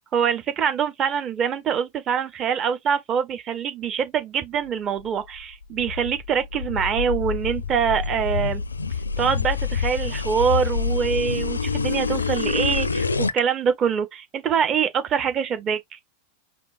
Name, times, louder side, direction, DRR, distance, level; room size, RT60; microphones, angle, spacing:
voice 1, 0.1-8.6 9.2-16.0, right 7 dB, 30° right, 1.1 m, -24 dB
sound 1, 5.4-13.4, left 5 dB, 80° left, 0.4 m, -26 dB
5.1 x 3.4 x 2.6 m
figure-of-eight pair, 90°, 0 cm